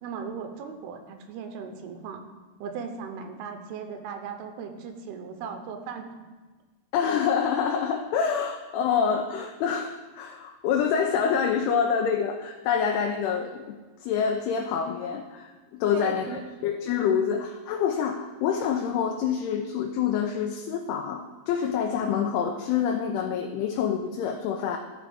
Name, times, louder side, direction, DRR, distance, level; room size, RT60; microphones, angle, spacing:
voice 1, 0.0-2.2 2.6-6.2 15.9-16.4, right 5 dB, 80° right, 6 dB, 2.6 m, -37 dB
voice 2, 6.9-15.5 15.8-16.3 16.6-24.8, left 7 dB, 85° left, 3 dB, 2.5 m, -26 dB
14.5 x 4.9 x 3.4 m, 1.3 s
omnidirectional pair, 4.8 m